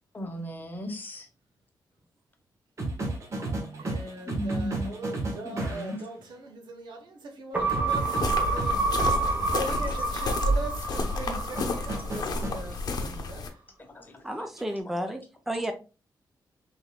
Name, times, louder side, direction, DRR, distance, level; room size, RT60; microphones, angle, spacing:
voice 1, 0.1-1.3 4.3-4.9 5.4-6.0 9.3-9.4 11.1-11.3 12.0-12.8 13.9-14.5, equal, 25° left, 0.9 m, -37 dB
sound 1, 2.8-6.0 7.7-9.2 11.6-12.6 14.6-14.8, right 2 dB, 40° right, 1.2 m, -32 dB
voice 2, 3.4-13.6, right 1 dB, 85° right, 1.1 m, -40 dB
sound 2, 7.5-12.2 12.6-12.7, right 3 dB, 20° right, 0.9 m, -28 dB
sound 3, 7.9-13.5, left 3 dB, 60° left, 0.8 m, -32 dB
voice 3, 14.2-15.2 15.5-15.7, equal, 5° right, 0.4 m, -31 dB
5.3 x 3.5 x 2.2 m
wide cardioid pair, 145°, 7 cm